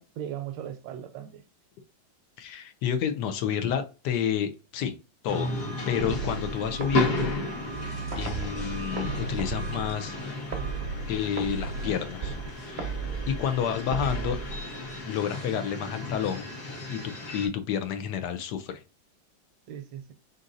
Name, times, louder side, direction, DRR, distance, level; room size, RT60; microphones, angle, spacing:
voice 1, 0.0-1.4 19.7-20.1, right 10 dB, 75° right, 1.2 m, -38 dB
voice 2, 2.4-4.9 5.2-7.3 8.2-10.2 11.1-12.4 12.7-13.0 13.3-14.4 15.1-16.5 16.9-17.0 17.3-18.8, left 8 dB, 70° left, 1.1 m, -30 dB
sound 1, 5.3-17.5, left 1 dB, 50° left, 1.5 m, -34 dB
sound 2, 6.0-15.0, right 4 dB, 45° right, 0.6 m, -35 dB
3.9 x 3.9 x 2.5 m
omnidirectional pair, 2.1 m